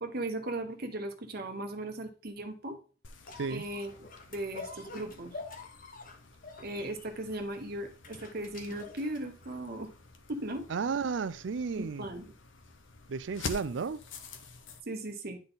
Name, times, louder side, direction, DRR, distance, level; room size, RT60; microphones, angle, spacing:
voice 1, 0.0-2.8 3.5-3.9 4.3-5.4 6.6-9.9 10.3-10.7 11.7-12.3 14.9-15.4, right 1 dB, 55° right, 1.0 m, -37 dB
sound 1, 3.0-14.8, left 4 dB, 80° left, 0.9 m, -48 dB
sound 2, 3.3-9.7 10.5-10.6, left 3 dB, 45° left, 1.2 m, -47 dB
voice 2, 10.7-12.0 13.1-14.0, right 5 dB, 70° right, 0.4 m, -33 dB
10.5 x 3.9 x 3.9 m
head